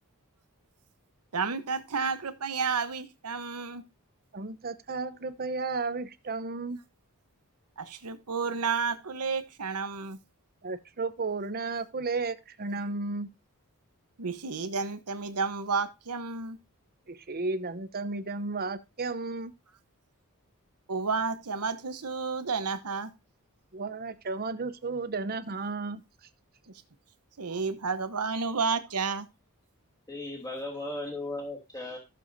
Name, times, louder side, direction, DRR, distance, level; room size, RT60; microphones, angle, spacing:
voice 1, 1.3-3.8 7.8-10.2 14.2-16.6 20.9-23.1 27.4-29.3, right 5 dB, 85° right, 1.0 m, -31 dB
voice 2, 4.3-6.8 10.6-13.3 17.1-19.5 23.7-26.0, right 3 dB, 45° right, 0.8 m, -33 dB
voice 3, 30.1-32.0, left 2 dB, 15° left, 2.8 m, -37 dB
14.5 x 7.0 x 2.7 m
head